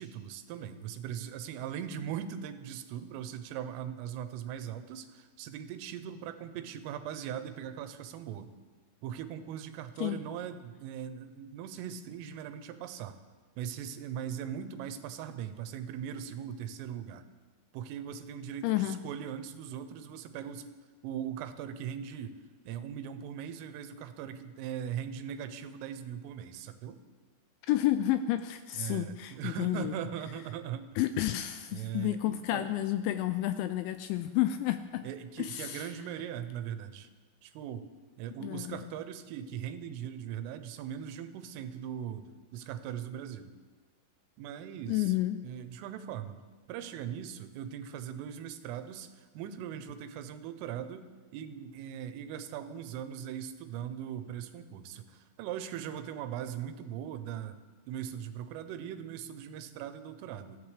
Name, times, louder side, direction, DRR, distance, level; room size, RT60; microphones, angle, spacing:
voice 1, 0.0-8.5 9.0-13.2 13.6-17.2 17.7-20.7 21.0-22.4 22.7-27.0 28.8-30.9 31.7-32.7 35.0-37.1 37.4-37.9 38.2-43.5 44.4-46.4 46.7-51.1 51.3-57.6 57.9-60.6, right 9 dB, 90° right, 10 dB, 3.4 m, -40 dB
voice 2, 18.6-19.0 27.7-29.9 31.0-35.1 35.4-35.9 38.4-38.9 44.9-45.4, left 13 dB, 85° left, 9 dB, 2.7 m, -30 dB
22.5 x 14.5 x 3.3 m, 1.4 s
omnidirectional pair, 5.7 m